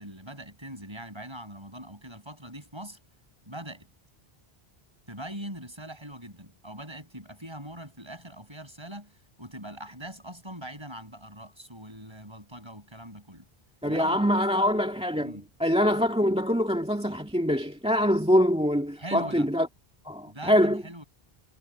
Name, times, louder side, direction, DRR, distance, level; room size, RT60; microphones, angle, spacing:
voice 1, 0.0-3.0 3.5-3.9 5.1-13.5 13.9-14.9 15.2-15.5 18.9-19.5 20.2-21.0, right 1 dB, 25° right, 7.4 m, -42 dB
voice 2, 13.8-15.3 15.6-19.7 20.1-20.8, equal, 5° right, 2.2 m, -24 dB
omnidirectional pair, 1.0 m